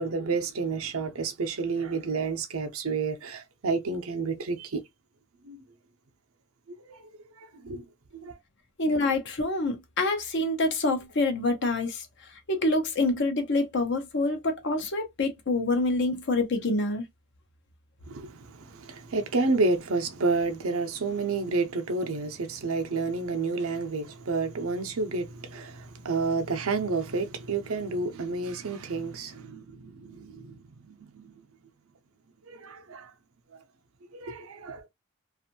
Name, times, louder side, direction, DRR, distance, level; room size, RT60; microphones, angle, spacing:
voice 1, 0.0-4.8 5.4-5.6 6.7-7.1 7.4-7.8 8.1-8.4 18.1-31.3 32.5-33.1 34.1-34.9, right 3 dB, 80° right, 0.6 m, -30 dB
voice 2, 8.8-17.0, left 2 dB, 55° left, 0.7 m, -26 dB
2.6 x 2.4 x 2.8 m
head